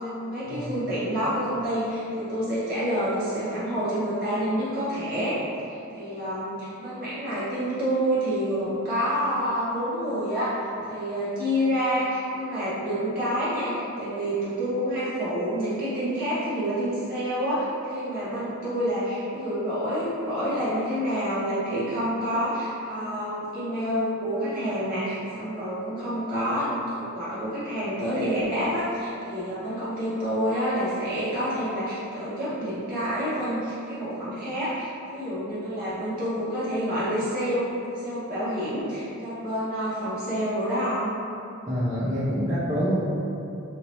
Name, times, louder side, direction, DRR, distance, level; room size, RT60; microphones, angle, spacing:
voice 1, 0.0-5.4 5.7-10.5 10.9-41.1, equal, 40° right, -12 dB, 1.2 m, -28 dB
voice 2, 41.7-43.0, equal, 15° right, -14 dB, 0.5 m, -26 dB
2.8 x 2.7 x 3.0 m, 2.7 s
head